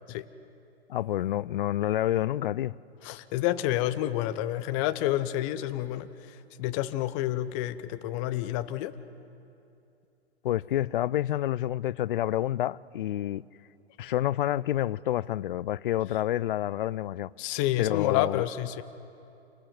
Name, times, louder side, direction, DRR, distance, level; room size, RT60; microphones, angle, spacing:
voice 1, 0.9-2.7 10.4-13.4 14.0-17.3 17.8-18.4, left 13 dB, 50° left, 0.5 m, -28 dB
voice 2, 3.0-8.9 17.4-18.8, left 14 dB, 30° left, 0.8 m, -29 dB
27.5 x 19.5 x 6.2 m
figure-of-eight pair, 120°, 33 cm